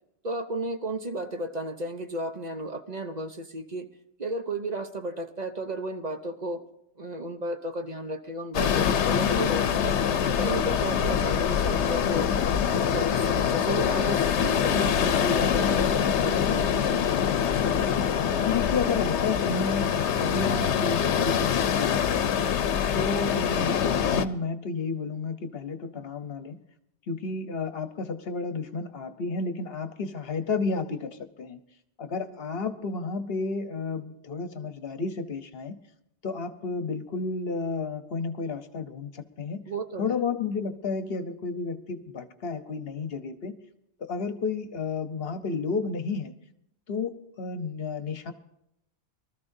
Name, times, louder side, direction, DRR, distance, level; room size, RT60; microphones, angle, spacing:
voice 1, 0.2-3.9 4.2-6.6 7.0-10.0 10.3-12.3 12.7-17.3 39.7-40.2, right 1 dB, 40° right, 6 dB, 0.9 m, -34 dB
sound 1, 8.5-24.3, left 8 dB, 85° left, 1.0 m, -24 dB
voice 2, 18.4-22.4 22.9-26.6 27.1-31.6 32.0-35.8 36.2-39.7 40.0-43.6 44.0-46.3 46.9-48.3, left 4 dB, 65° left, 10 dB, 1.1 m, -32 dB
23.5 x 13.5 x 2.7 m, 0.80 s
omnidirectional pair, 1.1 m